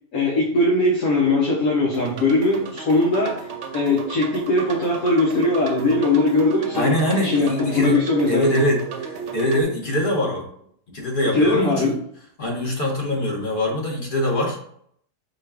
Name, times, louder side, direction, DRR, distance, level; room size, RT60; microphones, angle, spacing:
voice 1, 0.1-3.5 3.7-6.9 7.2-8.6 11.3-11.9, left 2 dB, 65° left, -2 dB, 1.2 m, -20 dB
sound 1, 1.9-9.6, right 5 dB, 60° right, 0.8 m, -34 dB
voice 2, 6.7-8.0 8.3-10.4 10.9-11.9 12.4-14.6, left 1 dB, 40° left, -1 dB, 1.0 m, -23 dB
4.6 x 2.3 x 4.7 m, 0.66 s
omnidirectional pair, 1.7 m